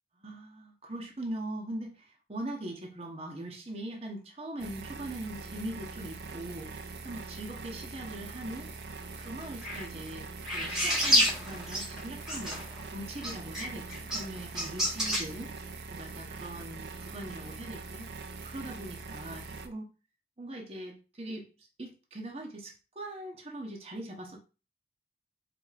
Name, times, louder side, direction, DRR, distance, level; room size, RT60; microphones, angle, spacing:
voice 1, 0.2-6.7 7.0-8.7 9.2-12.6 12.9-15.5 15.9-18.1 18.4-19.9 20.4-24.4, right 1 dB, 35° right, 0 dB, 0.9 m, -41 dB
sound 1, 4.6-19.7, right 3 dB, 75° right, 0.5 m, -43 dB
sound 2, 9.4-9.8 10.4-12.0 12.3-12.8 13.2-15.2, equal, 5° right, 1.3 m, -29 dB
4.7 x 3.4 x 2.4 m, 0.32 s
head